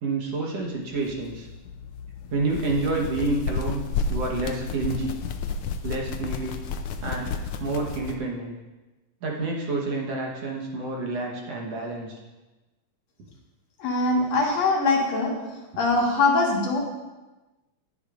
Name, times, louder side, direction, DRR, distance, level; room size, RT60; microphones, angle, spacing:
voice 1, 0.0-1.5 2.3-3.8 4.1-5.2 5.8-6.6 7.0-8.6 9.2-12.2, right 3 dB, 60° right, -1 dB, 2.3 m, -29 dB
sound 1, 0.9-8.1, left 4 dB, 85° left, 1.2 m, -32 dB
voice 2, 13.8-15.3 15.8-16.8, left 3 dB, 65° left, -2 dB, 2.7 m, -22 dB
20.0 x 8.2 x 2.5 m, 1.1 s
omnidirectional pair, 3.4 m